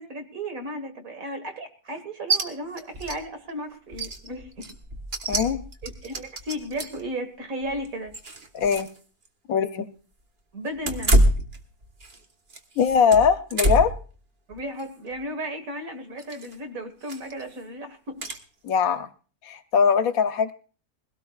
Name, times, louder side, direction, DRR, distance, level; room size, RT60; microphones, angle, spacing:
voice 1, 0.0-4.7 5.8-8.1 10.5-11.3 14.5-18.2, equal, 65° right, 7 dB, 2.0 m, -35 dB
sound 1, 2.3-2.4 2.8-3.2 3.5-3.6 3.9-7.1 7.6-9.0 9.2-9.3 10.8-12.2 12.5-14.0 14.5-14.8 16.2-16.5 17.0-17.4 18.2-18.4, right 1 dB, 35° right, 1.3 m, -26 dB
voice 2, 5.3-5.6 8.5-8.9 9.5-9.9 12.8-13.9 18.6-19.1 19.4-20.5, left 6 dB, 70° left, 10 dB, 1.2 m, -21 dB
21.0 x 17.0 x 2.4 m, 0.40 s
omnidirectional pair, 1.6 m